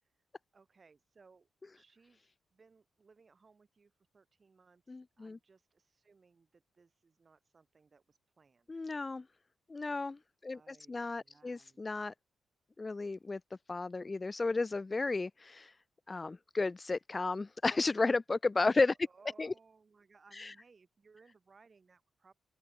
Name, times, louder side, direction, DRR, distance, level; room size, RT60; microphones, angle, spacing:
voice 1, 0.5-1.5 1.7-8.7 10.5-11.8 19.0-22.3, right 4 dB, 35° right, 6.3 m, -64 dB
voice 2, 4.9-5.4 8.7-9.2 9.7-12.1 12.8-13.4 13.7-15.7 16.1-19.0 19.4-19.5 20.4-20.5, left 3 dB, 25° left, 0.3 m, -33 dB
open air
cardioid pair, 100°, 0 cm